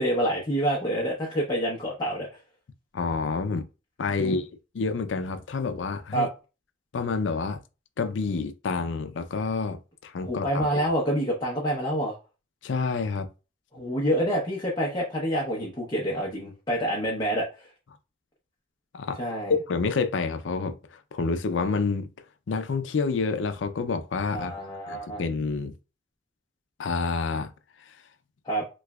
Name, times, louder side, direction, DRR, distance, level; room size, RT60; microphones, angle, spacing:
voice 1, 0.0-2.3 4.2-4.4 6.1-6.3 10.2-12.2 13.7-17.7 19.2-19.5 24.3-25.2 28.5-28.6, equal, 25° left, 0.8 m, -27 dB
voice 2, 2.9-3.7 4.0-4.5 4.7-6.3 6.9-7.6 8.0-10.8 12.6-13.3 18.9-19.2 19.5-22.1 22.5-24.6 24.9-25.7 26.8-27.5 27.9-28.0, left 4 dB, 75° left, 0.5 m, -28 dB
3.3 x 3.1 x 2.3 m
head